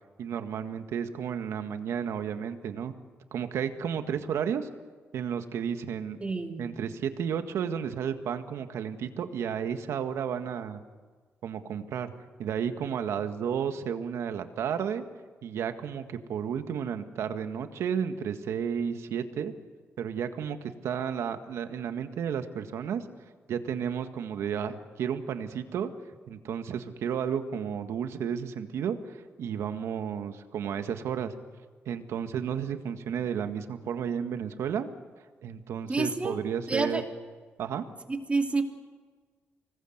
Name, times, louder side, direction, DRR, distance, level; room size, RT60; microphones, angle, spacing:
voice 1, 0.2-2.9 3.3-4.7 5.1-6.2 6.6-10.8 11.4-12.1 12.4-15.0 15.4-19.5 20.0-23.0 23.5-25.9 26.3-31.3 31.9-34.9 35.4-37.0 37.6-37.9, right 8 dB, 80° right, 8 dB, 1.8 m, -32 dB
voice 2, 6.2-6.7 35.9-36.4 36.7-37.0 38.3-38.6, right 3 dB, 25° right, 3 dB, 3.0 m, -28 dB
25.0 x 19.5 x 8.0 m, 1.5 s
cardioid pair, 70°, 5 cm